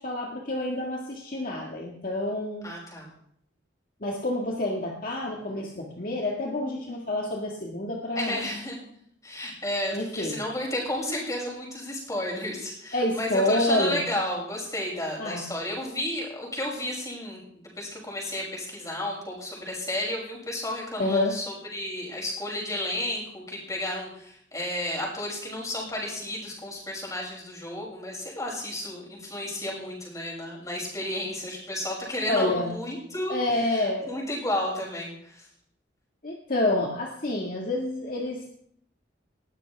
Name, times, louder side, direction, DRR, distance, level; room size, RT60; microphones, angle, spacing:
voice 1, 0.0-2.7 4.0-8.5 9.9-10.4 12.9-14.0 15.2-15.4 21.0-21.3 32.3-32.8 33.3-34.1 36.2-38.5, left 1 dB, 45° left, -1 dB, 1.8 m, -28 dB
voice 2, 2.6-3.1 8.1-8.9 9.2-33.4 33.7-35.5, left 1 dB, 15° left, -3 dB, 6.5 m, -32 dB
20.0 x 16.0 x 3.5 m, 0.69 s
head